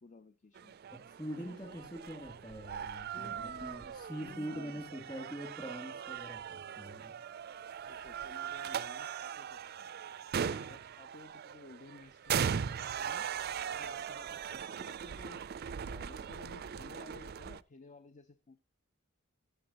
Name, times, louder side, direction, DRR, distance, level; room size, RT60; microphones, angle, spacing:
voice 1, 0.0-0.8 1.4-1.7 3.1-3.8 4.2-4.8 7.8-9.9 10.5-13.3 13.7-15.4 15.9-18.6, left 3 dB, 35° left, 12 dB, 0.5 m, -55 dB
sound 1, 0.5-17.6, right 7 dB, 50° right, 0.4 m, -40 dB
voice 2, 0.9-7.2, equal, 20° left, 3 dB, 2.5 m, -44 dB
14.0 x 8.8 x 2.9 m, 0.31 s
head